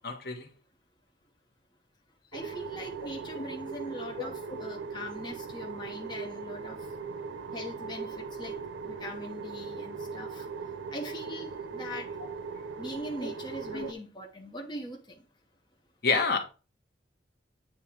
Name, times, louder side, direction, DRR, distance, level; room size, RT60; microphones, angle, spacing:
voice 1, 0.0-0.5 3.4-3.5 4.2-4.3 13.2-13.3 13.7-13.9 16.0-16.4, left 4 dB, 55° left, 1.1 m, -28 dB
voice 2, 2.3-6.9 7.5-8.6 8.8-10.5 10.9-12.4 12.8-15.2, left 1 dB, 25° left, 1.0 m, -41 dB
sound 1, 2.3-13.9, right 5 dB, 85° right, 0.6 m, -39 dB
8.6 x 3.1 x 4.5 m
head